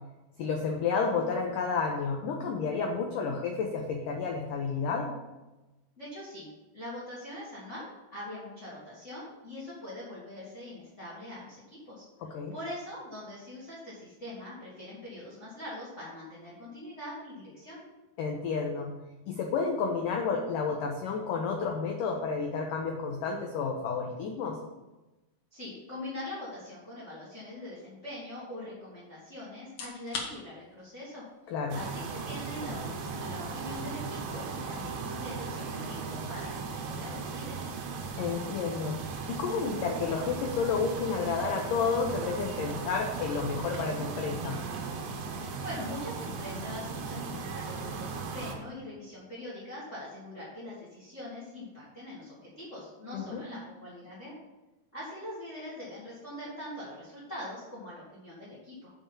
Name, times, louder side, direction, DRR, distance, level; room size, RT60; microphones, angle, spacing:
voice 1, 0.4-5.1 12.3-12.5 18.2-18.9 19.3-24.6 31.5-31.8 38.2-39.0 39.3-44.6 53.1-53.4, left 5 dB, 90° left, 1 dB, 1.8 m, -31 dB
voice 2, 6.0-6.5 6.7-7.8 8.1-17.8 25.5-31.2 31.7-37.7 45.6-54.3 54.9-58.9, left 1 dB, 25° left, -8 dB, 1.5 m, -43 dB
sound 1, 29.6-44.5, left 4 dB, 60° left, 2.1 m, -50 dB
sound 2, 31.7-48.6, right 4 dB, 80° right, 3.2 m, -37 dB
6.8 x 5.6 x 7.1 m, 1.1 s
omnidirectional pair, 5.0 m